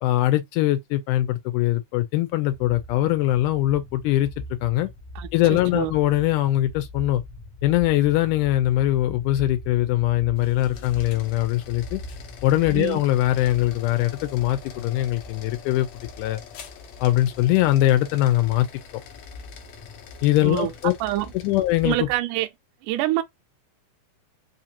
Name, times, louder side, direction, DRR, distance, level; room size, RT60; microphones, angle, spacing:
voice 1, 0.0-4.3 4.6-4.9 5.3-7.2 7.6-12.0 12.4-15.9 16.2-16.4 17.0-18.7 20.2-20.9 21.4-22.1, left 15 dB, 85° left, 2.1 m, -22 dB
sound 1, 3.3-22.2, left 1 dB, 45° left, 1.1 m, -42 dB
voice 2, 5.2-5.9 12.7-13.0 20.4-20.7 21.0-21.3 21.8-22.5 22.8-23.2, right 15 dB, 85° right, 2.1 m, -26 dB
sound 2, 10.3-22.0, left 9 dB, 70° left, 1.6 m, -46 dB
5.0 x 2.5 x 2.8 m
omnidirectional pair, 3.6 m